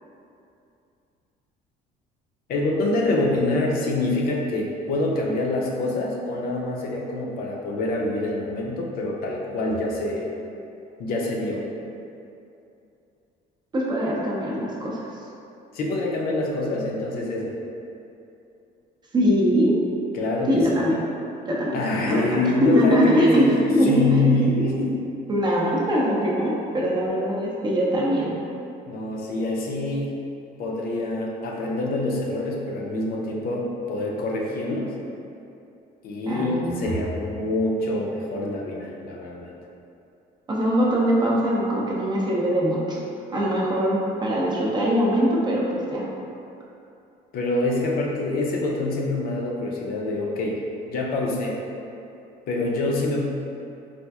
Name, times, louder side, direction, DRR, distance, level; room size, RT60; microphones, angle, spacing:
voice 1, 2.5-10.3 11.0-11.6 15.7-17.5 20.1-20.8 21.7-25.0 28.9-30.2 30.6-34.9 36.0-39.5 47.3-50.6 50.9-51.6 52.5-53.3, left 2 dB, 60° left, -2 dB, 0.5 m, -25 dB
voice 2, 13.7-15.1 19.1-19.7 20.5-21.0 21.5-21.8 22.0-23.4 23.7-24.4 25.3-28.4 36.3-36.9 40.5-43.0 43.3-46.1, equal, 25° right, -4 dB, 0.5 m, -22 dB
4.2 x 2.5 x 2.3 m, 2.7 s
cardioid pair, 140°, 18 cm